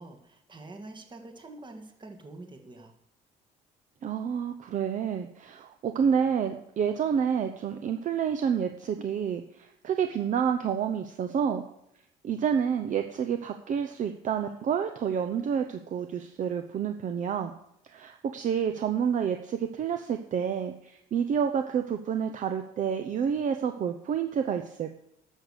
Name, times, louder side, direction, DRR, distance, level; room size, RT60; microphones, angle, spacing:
voice 1, 0.0-2.9, right 2 dB, 25° right, 4 dB, 1.9 m, -46 dB
voice 2, 4.0-11.6 12.2-17.5 17.8-24.9, right 7 dB, 50° right, 7 dB, 0.8 m, -29 dB
11.0 x 6.5 x 6.7 m, 0.81 s
cardioid pair, 110°, 17 cm